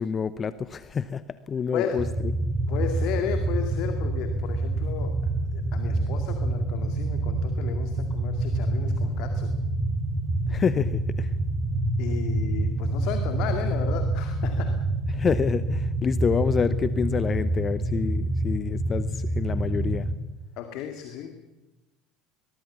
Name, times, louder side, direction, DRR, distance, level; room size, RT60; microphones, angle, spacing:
voice 1, 0.0-2.0 10.5-11.3 15.1-20.1, left 6 dB, 30° left, 15 dB, 0.8 m, -27 dB
voice 2, 1.7-2.0 2.7-5.2 5.5-9.5 12.0-14.8 20.6-21.3, left 8 dB, 50° left, 6 dB, 2.2 m, -34 dB
sound 1, 2.0-20.1, right 2 dB, 20° right, 4.1 m, -27 dB
23.0 x 22.0 x 7.3 m, 1.0 s
figure-of-eight pair, 70°, 0 cm